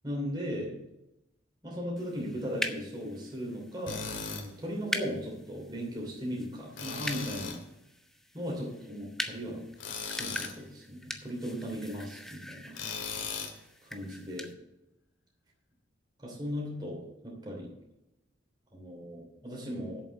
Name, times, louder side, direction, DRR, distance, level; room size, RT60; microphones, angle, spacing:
voice 1, 0.0-0.7 1.6-7.6 8.3-9.6 10.1-12.7 13.8-14.5 16.2-17.7 18.7-20.0, equal, 25° right, -2 dB, 2.9 m, -37 dB
sound 1, 2.0-14.5, left 1 dB, ahead, 0.7 m, -42 dB
Tools, 3.9-4.5 6.8-7.6 9.8-10.6 12.7-13.6, left 5 dB, 80° left, 2.0 m, -37 dB
8.2 x 7.3 x 7.7 m, 0.92 s
head